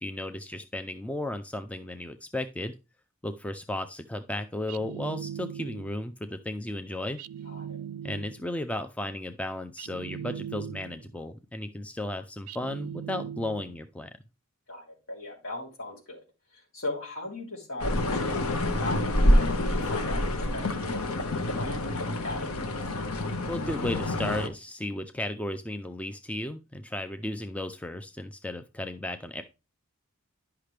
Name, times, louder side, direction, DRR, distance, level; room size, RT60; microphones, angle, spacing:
voice 1, 0.0-2.8 3.2-7.2 8.0-14.1 23.5-29.4, left 1 dB, 5° left, 8 dB, 0.3 m, -34 dB
sound 1, 4.7-6.0 7.2-8.5 9.8-11.1 12.5-13.8, right 9 dB, 90° right, 0.3 m, -39 dB
voice 2, 7.4-7.8 14.7-16.2 16.5-22.5, left 2 dB, 65° left, -2 dB, 2.9 m, -38 dB
sound 2, 17.8-24.5, left 1 dB, 85° left, 1.0 m, -27 dB
10.5 x 5.7 x 3.3 m, 0.29 s
head